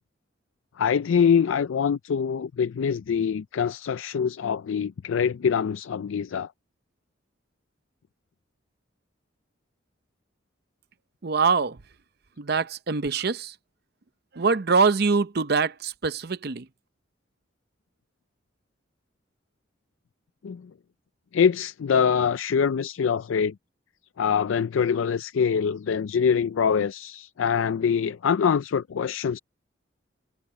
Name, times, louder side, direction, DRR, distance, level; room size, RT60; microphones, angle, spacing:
voice 1, 0.8-6.5 20.4-20.7 21.3-23.6 24.2-29.4, left 7 dB, 85° left, 0.4 m, -24 dB
voice 2, 11.2-11.8 12.4-13.5 14.3-16.7, right 4 dB, 55° right, 0.7 m, -24 dB
head